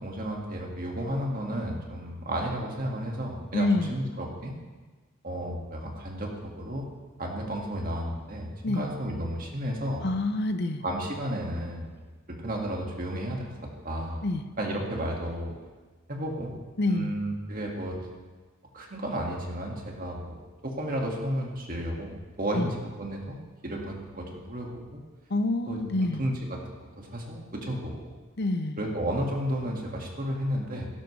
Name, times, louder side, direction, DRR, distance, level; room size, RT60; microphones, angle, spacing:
voice 1, 0.0-4.5 5.2-6.3 6.6-6.9 7.2-10.0 10.8-11.9 12.3-13.5 13.8-14.2 14.6-15.5 16.1-16.5 16.8-18.0 18.7-23.4 23.6-25.0 25.7-28.1 28.8-30.9, equal, 40° right, -1 dB, 2.0 m, -32 dB
voice 2, 3.5-3.9 8.6-8.8 10.0-10.8 14.2-14.4 16.8-17.1 22.6-22.7 25.3-26.2 28.4-28.8, left 2 dB, 50° left, 9 dB, 0.7 m, -27 dB
17.5 x 11.0 x 3.3 m, 1.3 s
head